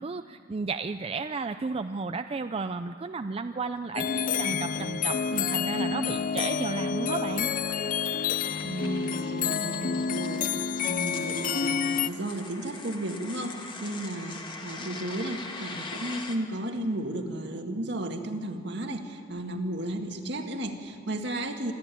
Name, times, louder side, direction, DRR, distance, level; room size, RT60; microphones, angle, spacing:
voice 1, 0.0-7.5, right 4 dB, 30° right, 9 dB, 0.4 m, -33 dB
sound 1, 3.9-12.1, left 6 dB, 45° left, 0.4 m, -29 dB
sound 2, 5.9-16.4, left 3 dB, 25° left, 1.7 m, -43 dB
voice 2, 8.6-21.7, right 1 dB, 65° right, 5 dB, 1.8 m, -34 dB
25.0 x 13.5 x 9.1 m, 2.5 s
head